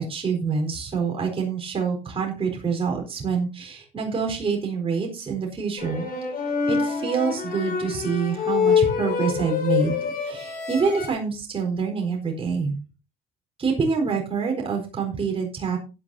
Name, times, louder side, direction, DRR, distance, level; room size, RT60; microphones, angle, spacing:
voice 1, 0.0-6.1 6.7-12.7 13.6-15.8, right 5 dB, 35° right, 1 dB, 4.3 m, -26 dB
sound 1, 5.8-11.1, left 6 dB, 60° left, 5.4 m, -25 dB
16.0 x 9.8 x 2.8 m, 0.29 s
cardioid pair, 110°, 17 cm